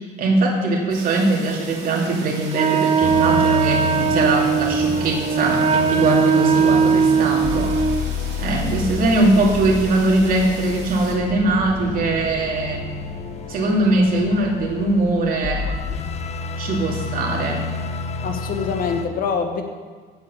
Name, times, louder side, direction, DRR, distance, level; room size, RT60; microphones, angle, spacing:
voice 1, 0.2-7.7 8.4-12.9 13.5-15.7 16.6-17.6, right 2 dB, 55° right, -1 dB, 2.6 m, -21 dB
sound 1, 0.9-11.1, right 4 dB, 75° right, 2.8 m, -40 dB
Wind instrument woodwind instrument, 2.5-8.1, right 6 dB, 35° right, 0.6 m, -19 dB
sound 2, 3.0-19.0, left 5 dB, 40° left, 0.9 m, -29 dB
voice 2, 18.2-19.6, left 6 dB, 60° left, 5 dB, 1.5 m, -24 dB
8.6 x 7.9 x 8.4 m, 1.6 s
cardioid pair, 110°, 17 cm